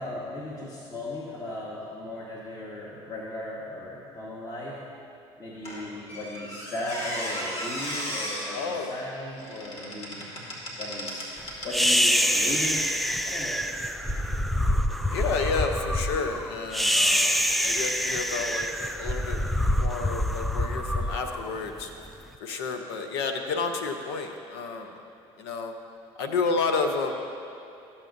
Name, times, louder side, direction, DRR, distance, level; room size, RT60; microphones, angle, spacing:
voice 1, 0.0-4.8 5.4-10.3 10.7-12.9 13.2-13.6, left 1 dB, 30° left, -5 dB, 1.4 m, -36 dB
Squeak, 5.6-11.8 12.4-12.6, equal, 50° left, 2.1 m, -36 dB
voice 2, 8.5-8.9 15.1-21.9 22.4-25.0 25.4-25.7 26.2-27.1, left 4 dB, 85° left, 5 dB, 0.7 m, -30 dB
sound 1, 11.7-22.1, equal, ahead, 0.3 m, -26 dB
13.0 x 7.1 x 2.6 m, 2.7 s
hypercardioid pair, 75°, 13 cm